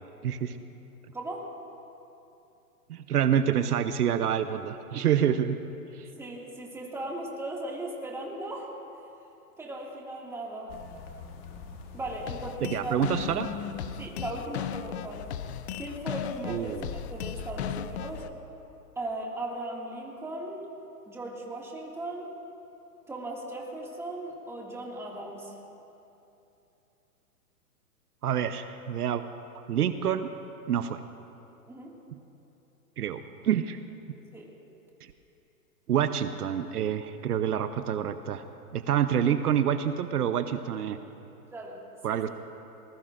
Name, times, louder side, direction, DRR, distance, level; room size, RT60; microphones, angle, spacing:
voice 1, 0.2-0.6 2.9-5.6 12.6-13.5 16.5-16.9 28.2-29.2 29.7-30.3 30.7-31.0 32.1-32.2 33.0-33.8 35.9-38.4 38.7-41.0 42.0-42.3, right 9 dB, 75° right, 10 dB, 0.9 m, -27 dB
voice 2, 1.1-1.5 6.2-8.7 9.6-10.8 11.9-13.0 14.0-15.3 15.8-18.2 19.0-20.7 21.1-22.3 23.1-25.6 31.7-32.0 34.3-34.5 41.5-41.8 42.1-42.2, right 1 dB, 5° right, -3 dB, 2.1 m, -37 dB
sound 1, 10.7-18.2, left 4 dB, 30° left, 1.5 m, -43 dB
sound 2, 12.3-18.3, left 11 dB, 50° left, 0.5 m, -36 dB
26.0 x 20.0 x 2.6 m, 2.9 s
hypercardioid pair, 145°, 46 cm